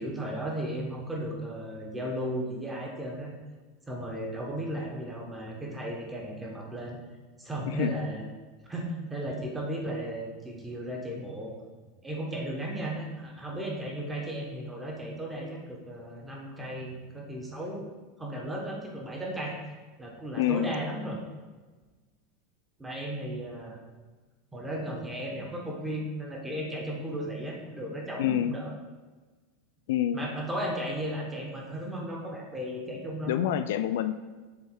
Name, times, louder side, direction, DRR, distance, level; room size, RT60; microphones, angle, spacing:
voice 1, 0.0-3.3 3.9-7.0 7.4-8.2 8.7-11.5 12.0-17.9 18.2-19.6 20.0-21.2 22.8-23.8 24.5-28.7 30.1-33.5, right 1 dB, 10° right, -1 dB, 1.1 m, -35 dB
voice 2, 7.7-8.0 20.4-20.7 28.2-28.6 29.9-30.3 33.3-34.1, left 11 dB, 75° left, 10 dB, 0.3 m, -27 dB
6.9 x 3.5 x 4.9 m, 1.3 s
supercardioid pair, 155°, 0 cm